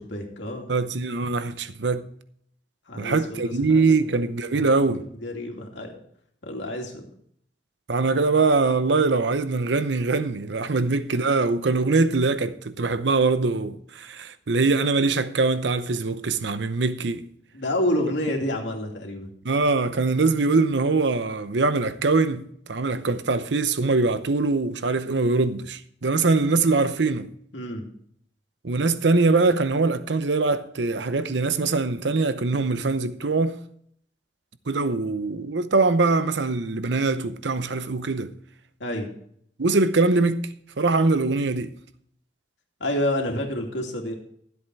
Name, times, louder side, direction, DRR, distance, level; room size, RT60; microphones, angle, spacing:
voice 1, 0.0-0.7 2.9-4.7 5.2-6.0 6.4-7.0 17.5-19.3 27.5-27.9 38.8-39.1 42.8-44.1, left 1 dB, 90° left, 2.5 m, -29 dB
voice 2, 0.7-2.1 3.0-5.1 7.9-17.3 19.4-27.3 28.6-33.6 34.7-38.3 39.6-40.5 40.8-41.7, right 3 dB, 80° right, 0.8 m, -23 dB
13.0 x 8.1 x 4.6 m
head